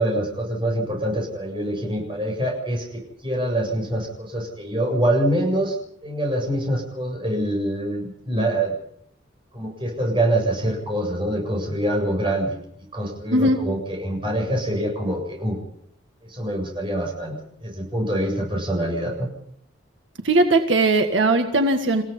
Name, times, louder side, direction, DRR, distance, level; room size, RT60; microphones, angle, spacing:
voice 1, 0.0-5.8 6.0-8.7 9.5-12.5 12.9-15.6 16.3-19.3, right 1 dB, 25° right, 1 dB, 7.6 m, -25 dB
voice 2, 20.2-22.0, right 2 dB, 80° right, 5 dB, 1.8 m, -19 dB
29.5 x 16.5 x 5.6 m, 0.71 s
head